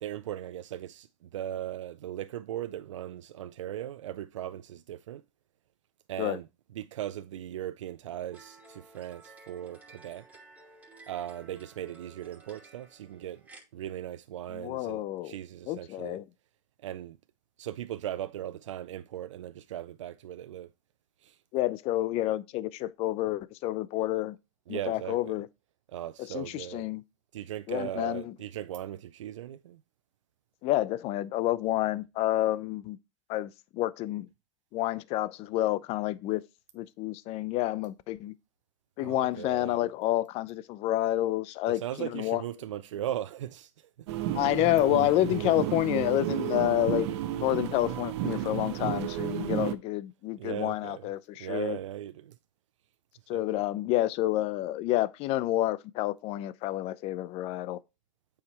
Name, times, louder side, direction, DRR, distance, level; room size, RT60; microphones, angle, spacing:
voice 1, 0.0-5.2 6.1-6.5 6.8-10.3 11.1-13.4 13.7-16.2 16.8-17.2 17.6-20.7 21.2-21.4 24.7-25.4 25.9-26.9 27.3-29.8 39.0-39.8 41.7-43.7 44.2-44.3 50.4-51.1 51.4-52.4 53.3-53.4, right 11 dB, 90° right, 0.4 m, -38 dB
sound 1, 8.3-13.6, right 3 dB, 10° right, 2.6 m, -54 dB
voice 2, 14.5-15.3 15.7-16.3 21.5-24.4 24.7-25.5 26.2-27.0 27.7-28.3 30.6-33.0 33.3-34.3 34.7-36.4 36.7-38.3 39.0-42.4 44.3-47.1 47.4-51.8 53.3-57.8, left 15 dB, 40° left, 0.6 m, -29 dB
sound 2, 44.1-49.7, right 12 dB, 65° right, 0.8 m, -32 dB
8.4 x 4.9 x 3.0 m
hypercardioid pair, 120°, 15 cm